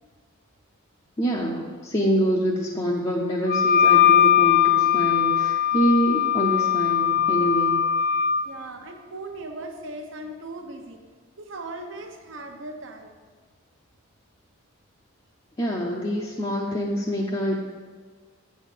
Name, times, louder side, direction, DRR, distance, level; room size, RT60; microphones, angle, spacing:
voice 1, 1.2-7.8 15.6-17.6, equal, 25° left, -4 dB, 0.7 m, -25 dB
Wind instrument woodwind instrument, 3.5-8.5, left 9 dB, 50° left, 0.3 m, -20 dB
voice 2, 8.4-11.0 11.4-13.2, right 2 dB, 60° right, 4 dB, 0.9 m, -38 dB
8.3 x 4.2 x 7.1 m, 1.5 s
head